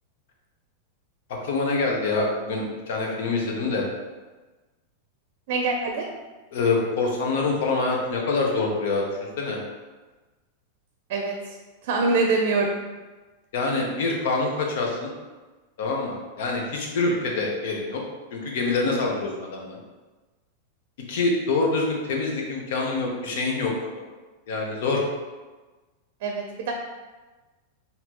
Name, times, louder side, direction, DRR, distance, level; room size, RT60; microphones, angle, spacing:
voice 1, 1.4-3.9 6.5-9.1 9.4-9.6 13.5-15.1 15.8-18.0 18.3-19.8 21.1-23.7 24.5-25.0, left 3 dB, 70° left, 0 dB, 0.9 m, -25 dB
voice 2, 5.5-6.1 11.1-11.6 11.8-12.8 26.2-26.7, right 3 dB, 65° right, 2 dB, 0.5 m, -24 dB
4.3 x 2.7 x 3.0 m, 1.3 s
supercardioid pair, 135°, 0 cm